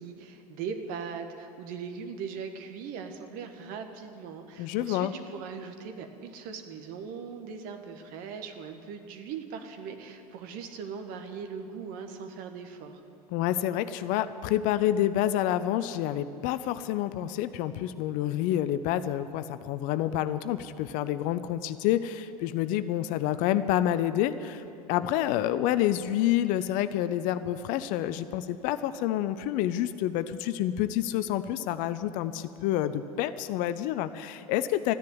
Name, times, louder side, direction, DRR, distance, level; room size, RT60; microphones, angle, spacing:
voice 1, 0.0-13.0, right 6 dB, 45° right, 7 dB, 1.5 m, -40 dB
voice 2, 4.6-5.1 13.3-34.9, left 12 dB, 45° left, 13 dB, 0.6 m, -28 dB
14.0 x 10.5 x 9.5 m, 2.6 s
figure-of-eight pair, 80°, 20 cm